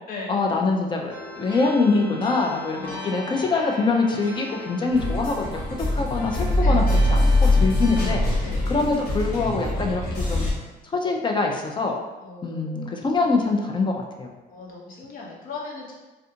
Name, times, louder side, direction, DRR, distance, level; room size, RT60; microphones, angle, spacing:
voice 1, 0.3-7.3 7.6-8.2 8.7-10.5 11.0-11.9 12.4-14.3, left 3 dB, 30° left, 2 dB, 0.5 m, -24 dB
sound 1, 1.1-8.2, left 1 dB, 10° left, 1.1 m, -39 dB
voice 2, 2.7-3.6 6.6-6.8 8.4-8.7 12.2-13.0 14.5-15.9, left 4 dB, 55° left, -3 dB, 0.9 m, -38 dB
sound 2, 4.9-10.5, left 1 dB, 85° left, 1.4 m, -22 dB
3.4 x 2.5 x 2.7 m, 1.2 s
cardioid pair, 110°, 17 cm